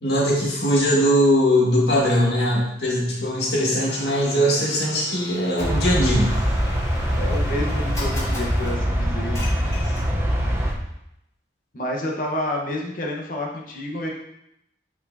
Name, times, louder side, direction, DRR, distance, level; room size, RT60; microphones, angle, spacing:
voice 1, 0.0-6.3, equal, 65° left, -4 dB, 1.9 m, -20 dB
Domestic sounds home sounds, 3.9-10.4, left 1 dB, 20° left, 2.6 m, -38 dB
sound 1, 5.6-10.7, equal, 15° right, 0.8 m, -23 dB
voice 2, 7.1-9.4 9.7-10.2 11.7-14.1, left 1 dB, 50° left, -1 dB, 1.1 m, -29 dB
8.3 x 4.8 x 2.7 m, 0.81 s
head